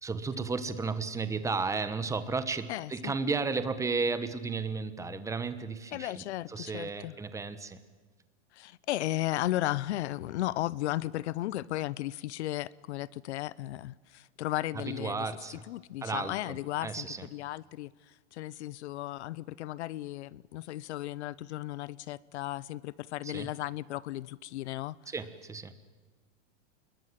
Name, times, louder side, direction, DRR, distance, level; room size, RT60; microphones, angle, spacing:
voice 1, 0.0-7.8 14.7-15.7 16.0-17.3 23.2-23.5 25.1-25.7, right 4 dB, 10° right, 1.2 m, -34 dB
voice 2, 2.7-3.1 5.9-7.1 8.5-15.3 15.7-25.0, left 15 dB, 75° left, 0.8 m, -35 dB
26.5 x 21.5 x 7.6 m
supercardioid pair, 150°, 34 cm